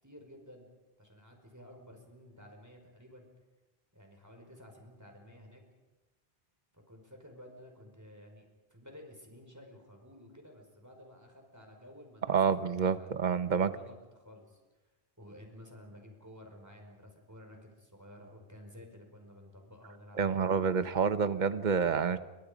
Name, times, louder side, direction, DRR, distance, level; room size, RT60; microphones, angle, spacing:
voice 1, 0.0-0.7 1.0-3.3 3.9-5.6 6.7-12.6 12.9-13.1 13.4-14.6 15.2-20.7, left 1 dB, 15° right, 2 dB, 5.2 m, -53 dB
voice 2, 12.3-13.7 20.2-22.2, right 6 dB, 50° right, 12 dB, 1.2 m, -28 dB
29.5 x 25.0 x 5.3 m, 1.1 s
omnidirectional pair, 1.0 m